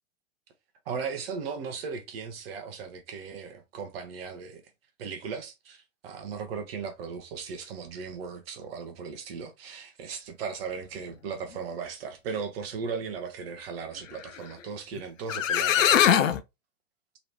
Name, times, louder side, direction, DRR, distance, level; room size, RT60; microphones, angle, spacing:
voice 1, 0.9-4.6 5.0-16.4, right 5 dB, 40° right, 0.7 m, -37 dB
sound 1, 15.0-15.1 15.3-16.4, left 9 dB, 60° left, 0.5 m, -21 dB
3.0 x 3.0 x 2.7 m
figure-of-eight pair, 100°, 44 cm